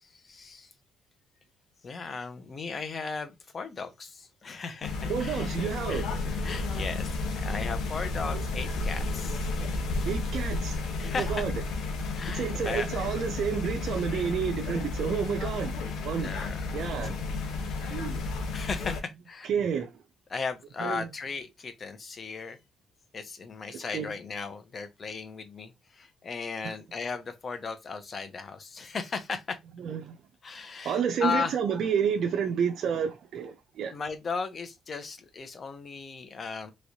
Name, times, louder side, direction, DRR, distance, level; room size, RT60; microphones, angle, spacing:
voice 1, 0.0-0.7 1.8-5.5 5.9-9.4 11.0-11.5 12.1-12.9 16.1-16.6 17.0-17.2 18.5-19.5 20.3-22.6 23.1-29.6 30.4-31.6 33.9-36.7, left 5 dB, 40° left, 0.8 m, -36 dB
sound 1, 4.8-19.0, left 3 dB, 80° left, 0.8 m, -32 dB
voice 2, 5.1-6.1 8.3-8.4 10.0-11.5 12.3-15.7 16.0-16.3 16.7-17.2 17.9-18.2 19.5-19.9 20.8-21.1 23.7-24.1 26.6-26.7 29.8-30.2 30.8-33.9, right 7 dB, 70° right, 0.4 m, -30 dB
3.1 x 3.0 x 2.7 m
cardioid pair, 90°, 0 cm